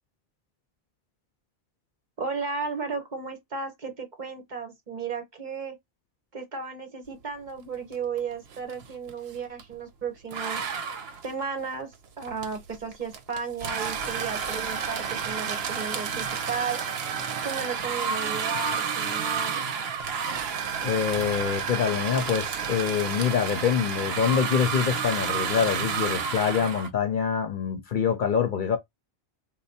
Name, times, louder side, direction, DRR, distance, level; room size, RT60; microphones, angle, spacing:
voice 1, 2.2-5.8 6.3-10.7 11.2-16.8 17.4-19.6, right 5 dB, 50° right, 1.1 m, -34 dB
sound 1, 7.9-8.2 8.5-9.7 10.3-26.9, right 6 dB, 75° right, 0.9 m, -31 dB
voice 2, 20.8-28.8, left 7 dB, 60° left, 0.6 m, -25 dB
3.2 x 2.1 x 4.1 m
omnidirectional pair, 1.1 m